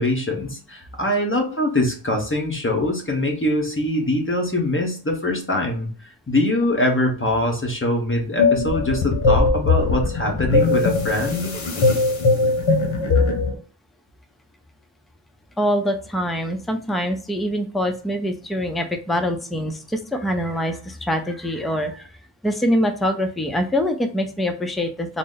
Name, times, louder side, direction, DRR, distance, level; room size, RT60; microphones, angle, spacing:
voice 1, 0.0-5.9 6.3-11.5, left 1 dB, 25° left, 1 dB, 1.0 m, -23 dB
sound 1, 8.4-13.5, left 3 dB, 75° left, 0.9 m, -20 dB
voice 2, 15.6-22.1 22.4-25.2, equal, ahead, 6 dB, 0.4 m, -24 dB
3.9 x 2.0 x 3.8 m, 0.41 s
wide cardioid pair, 70°, 48 cm